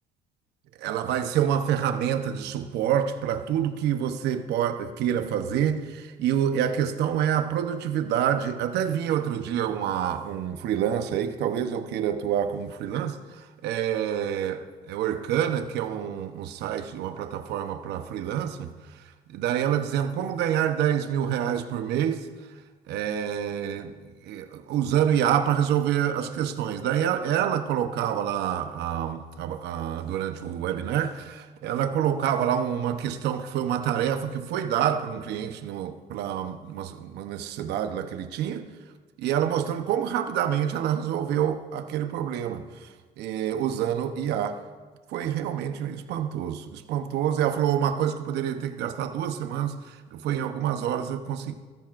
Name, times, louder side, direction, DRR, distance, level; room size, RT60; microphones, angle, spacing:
voice 1, 0.8-18.7 19.3-22.3 22.9-23.9 24.2-38.7 39.2-42.6 43.2-44.6 45.1-51.6, right 9 dB, 80° right, 8 dB, 0.9 m, -27 dB
16.5 x 13.5 x 2.6 m, 1.4 s
cardioid pair, 110°, 17 cm